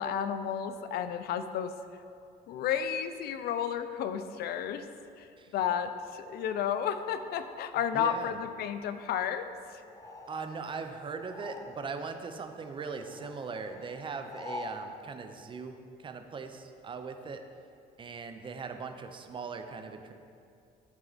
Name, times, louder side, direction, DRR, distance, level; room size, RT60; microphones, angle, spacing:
voice 1, 0.0-1.7 2.5-4.9 5.2-9.8, left 8 dB, 65° left, 10 dB, 0.5 m, -32 dB
voice 2, 7.9-8.4 10.0-17.4 18.0-20.1, right 5 dB, 30° right, 7 dB, 0.6 m, -40 dB
sound 1, 9.9-12.1 12.4-14.8, left 2 dB, 20° left, 0.6 m, -46 dB
11.0 x 4.5 x 4.0 m, 2.4 s
cardioid pair, 110°, 17 cm